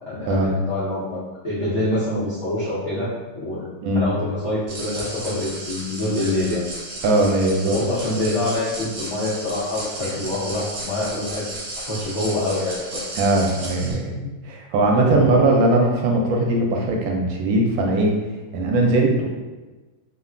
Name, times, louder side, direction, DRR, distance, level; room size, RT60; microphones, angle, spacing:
voice 1, 0.0-3.7 3.9-6.6 7.6-11.5 11.8-13.0 13.8-14.3 15.1-15.2, left 1 dB, 70° left, -10 dB, 0.6 m, -26 dB
sound 1, 4.7-13.9, right 2 dB, 55° right, 1.0 m, -34 dB
voice 2, 7.0-7.8 10.0-10.1 13.1-14.1 14.4-18.2 18.5-19.3, right 2 dB, 80° right, 0 dB, 1.3 m, -19 dB
3.5 x 2.2 x 2.4 m, 1.2 s
omnidirectional pair, 2.2 m